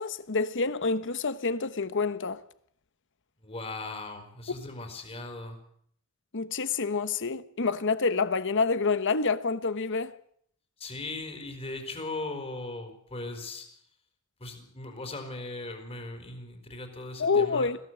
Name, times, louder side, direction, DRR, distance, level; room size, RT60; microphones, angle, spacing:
voice 1, 0.0-2.4 6.3-10.1 17.2-17.8, left 4 dB, 55° left, 1.1 m, -27 dB
voice 2, 3.4-5.6 10.8-13.7 14.4-17.7, left 2 dB, 25° left, 4.3 m, -38 dB
21.5 x 16.5 x 7.9 m
head